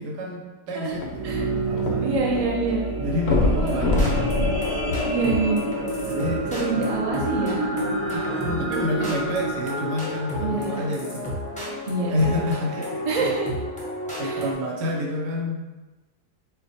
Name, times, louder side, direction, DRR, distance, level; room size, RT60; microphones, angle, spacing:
voice 1, 0.0-2.1 3.0-4.3 4.9-5.2 6.0-6.9 8.1-11.3 12.1-13.0 14.2-15.6, left 1 dB, 85° right, 0 dB, 1.3 m, -29 dB
sound 1, 0.8-11.3 11.9-12.0, right 2 dB, 45° right, 0.9 m, -29 dB
sound 2, 0.9-2.4 2.7-2.8 3.2-5.8 6.5-6.6, left 2 dB, 65° left, 0.6 m, -25 dB
voice 2, 2.0-2.8 3.5-3.8 5.0-5.6 5.9-6.0 6.5-7.7 10.4-10.8 11.9-12.4 13.1-13.5 14.2-14.4, right 4 dB, 60° right, -3 dB, 0.3 m, -26 dB
sound 3, 3.7-14.5, left 1 dB, 10° left, 0.5 m, -31 dB
4.1 x 2.2 x 4.1 m, 1.2 s
omnidirectional pair, 1.8 m